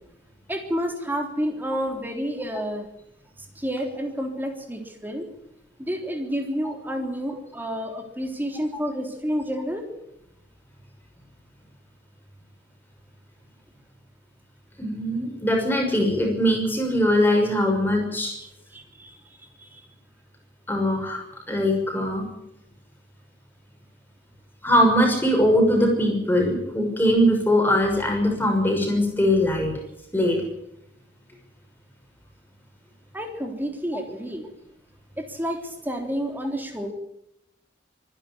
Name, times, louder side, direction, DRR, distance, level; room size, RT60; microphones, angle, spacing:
voice 1, 0.5-2.9 3.6-5.2 5.8-9.9 18.4-19.8 33.1-34.5 35.2-36.9, equal, 10° right, 3 dB, 3.6 m, -30 dB
voice 2, 14.8-18.3 20.7-21.2 21.5-22.2 24.6-29.7 30.1-30.4, equal, 10° left, 2 dB, 6.3 m, -21 dB
24.5 x 11.0 x 9.8 m, 0.82 s
head